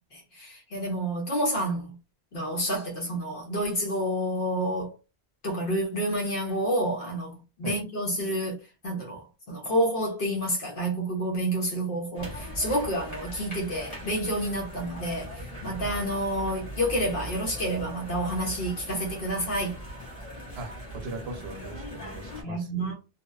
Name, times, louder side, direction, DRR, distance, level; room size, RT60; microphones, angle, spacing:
voice 1, 0.1-2.0 2.3-4.9 5.4-7.3 7.6-8.6 8.8-19.8 22.4-22.9, equal, 60° left, 0.9 m, -29 dB
sound 1, 12.1-22.4, right 1 dB, 40° left, 1.0 m, -40 dB
voice 2, 20.6-22.9, right 2 dB, 85° right, 0.9 m, -39 dB
2.7 x 2.0 x 2.3 m
omnidirectional pair, 1.1 m